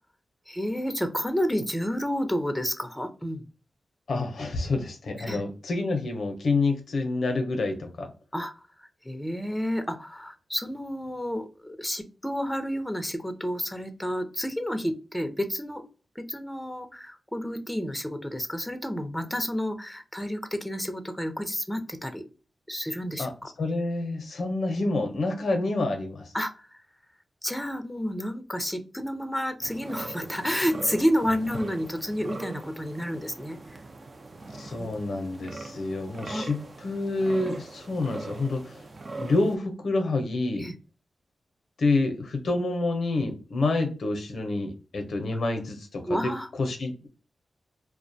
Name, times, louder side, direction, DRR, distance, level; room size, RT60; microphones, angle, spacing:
voice 1, 0.5-3.4 5.2-5.4 8.3-8.5 8.8-15.8 16.2-22.2 22.7-23.5 26.3-26.8 27.4-33.8 34.6-34.9 35.5-35.8 36.3-36.4 40.6-40.7 46.1-46.5, equal, 5° left, 8 dB, 0.5 m, -30 dB
voice 2, 4.1-8.1 23.2-23.3 23.6-26.3 34.6-38.8 39.2-40.6 41.8-46.3 46.6-47.1, left 2 dB, 75° left, 4 dB, 0.5 m, -28 dB
sound 1, 29.6-39.6, right 2 dB, 50° right, 0.4 m, -41 dB
2.3 x 2.1 x 2.6 m, 0.34 s
cardioid pair, 55°, 0 cm